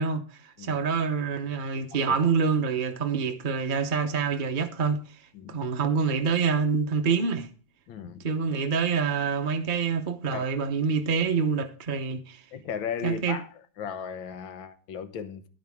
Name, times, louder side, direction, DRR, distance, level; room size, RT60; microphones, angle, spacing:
voice 1, 0.0-7.5 8.2-12.4 13.0-13.4, right 5 dB, 40° right, 0.8 m, -26 dB
voice 2, 7.9-8.2 10.3-10.5 12.5-15.5, left 7 dB, 90° left, 1.8 m, -36 dB
11.0 x 10.5 x 3.6 m
omnidirectional pair, 2.0 m